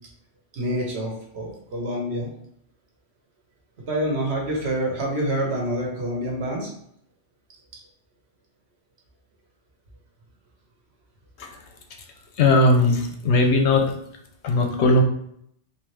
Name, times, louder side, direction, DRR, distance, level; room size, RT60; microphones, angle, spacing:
voice 1, 0.5-2.3 3.9-6.7, right 1 dB, 60° right, -1 dB, 1.1 m, -27 dB
voice 2, 12.4-13.8 14.4-15.0, left 2 dB, 70° left, 4 dB, 0.8 m, -18 dB
3.6 x 2.7 x 3.2 m, 0.70 s
omnidirectional pair, 1.3 m